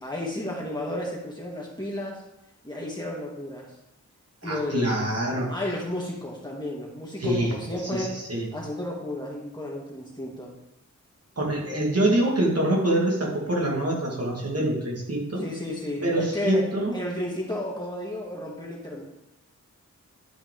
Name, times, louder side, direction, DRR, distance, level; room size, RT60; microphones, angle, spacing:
voice 1, 0.0-2.2 2.6-3.7 4.4-5.1 5.5-8.2 8.5-10.5 15.4-16.6 16.9-19.0, left 1 dB, 15° left, -4 dB, 2.3 m, -33 dB
voice 2, 4.4-5.5 7.2-7.5 7.9-8.5 11.4-15.4 16.0-17.0, right 1 dB, 55° right, -2 dB, 1.8 m, -25 dB
11.0 x 4.9 x 3.7 m, 0.93 s
wide cardioid pair, 80°, 30 cm